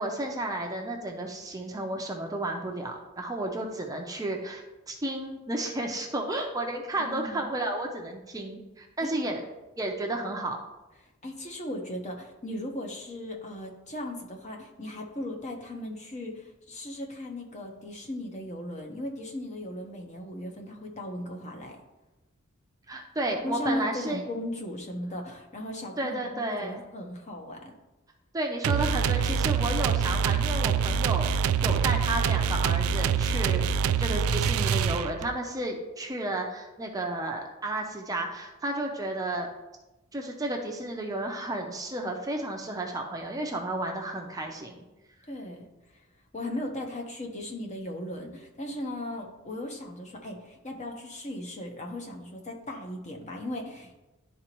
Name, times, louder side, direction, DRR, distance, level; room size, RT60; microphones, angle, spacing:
voice 1, 0.0-9.4 9.8-10.6 22.9-24.2 26.0-26.8 28.3-31.3 31.6-39.5 40.1-44.8, right 1 dB, 15° right, 2 dB, 0.6 m, -32 dB
voice 2, 7.0-7.5 9.0-9.1 11.2-21.8 23.4-27.7 45.3-45.7 46.3-53.9, left 1 dB, 35° left, 1 dB, 1.0 m, -37 dB
sound 1, 28.6-35.4, right 6 dB, 85° right, 0.3 m, -25 dB
11.5 x 4.0 x 3.0 m, 1.0 s
head